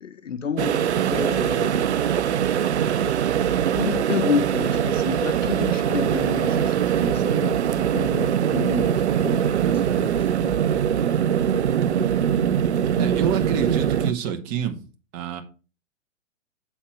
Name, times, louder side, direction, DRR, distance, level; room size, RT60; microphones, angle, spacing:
voice 1, 0.0-2.0 3.3-10.6, left 7 dB, 75° left, 0.6 m, -30 dB
sound 1, 0.6-14.1, right 9 dB, 60° right, 0.5 m, -22 dB
voice 2, 13.0-14.8 15.1-15.4, right 8 dB, 20° right, 1.0 m, -27 dB
7.7 x 4.2 x 5.7 m
figure-of-eight pair, 115°, 38 cm